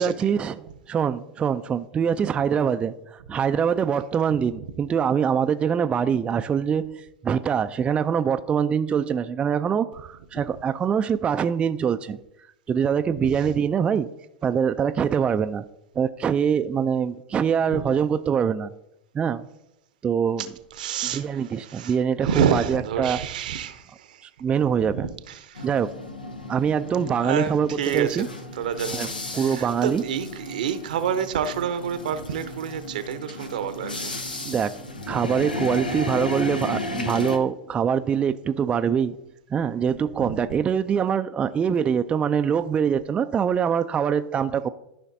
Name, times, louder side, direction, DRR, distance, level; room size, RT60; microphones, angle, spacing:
voice 1, 0.0-12.2 12.7-14.1 14.4-15.6 16.0-18.7 19.1-19.5 20.0-20.5 21.0-23.2 24.2-25.1 25.6-26.1 26.5-28.3 28.9-29.1 29.3-30.0 34.4-34.8 35.1-39.2 39.5-44.7, right 7 dB, 25° right, 0.4 m, -24 dB
voice 2, 20.7-22.0 22.2-24.2 24.9-25.7 27.2-28.2 28.5-29.1 29.3-34.2 40.2-40.4, right 8 dB, 70° right, 0.8 m, -28 dB
sound 1, 25.5-37.4, left 2 dB, 90° left, 0.9 m, -34 dB
13.5 x 5.8 x 2.7 m
figure-of-eight pair, 85°, 5 cm